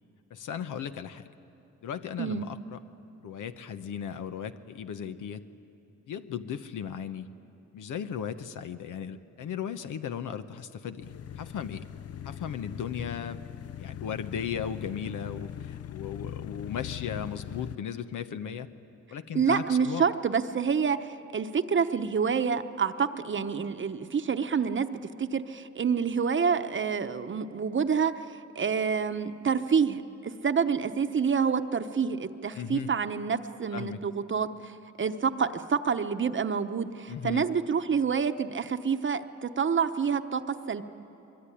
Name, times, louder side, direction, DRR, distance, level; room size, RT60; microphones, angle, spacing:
voice 1, 0.3-1.2 1.8-2.8 3.2-5.4 6.1-7.3 7.7-11.8 12.2-13.4 13.8-18.7 19.1-20.0 32.5-32.9 33.7-34.0 37.1-37.5, left 8 dB, 85° left, 9 dB, 1.0 m, -36 dB
sound 1, 11.0-17.8, left 10 dB, 55° left, 0.5 m, -40 dB
voice 2, 19.3-40.8, right 6 dB, 40° right, 8 dB, 1.0 m, -28 dB
24.0 x 23.0 x 10.0 m, 3.0 s
cardioid pair, 105°, 30 cm